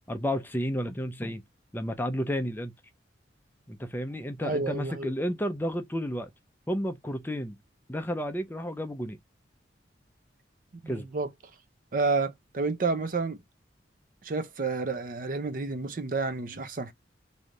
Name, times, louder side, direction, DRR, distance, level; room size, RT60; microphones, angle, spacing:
voice 1, 0.1-1.4 1.7-2.7 3.7-6.3 6.7-7.6 7.9-9.2 10.9-11.1, equal, 10° left, 0.5 m, -31 dB
voice 2, 4.4-5.1 10.8-11.3 11.9-13.4 14.2-16.9, right 3 dB, 45° right, 0.5 m, -30 dB
3.2 x 2.7 x 3.7 m
head